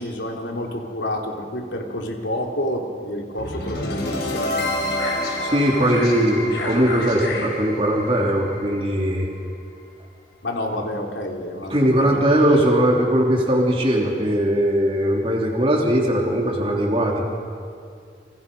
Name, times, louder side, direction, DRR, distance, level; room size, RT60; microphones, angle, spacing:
voice 1, 0.0-4.7 10.4-12.2, left 1 dB, 80° left, 1 dB, 3.5 m, -29 dB
sound 1, 3.4-9.4, left 1 dB, 65° left, 4.8 m, -28 dB
voice 2, 5.4-9.3 11.7-17.3, right 1 dB, 30° right, -2 dB, 3.3 m, -20 dB
30.0 x 24.5 x 5.6 m, 2.2 s
head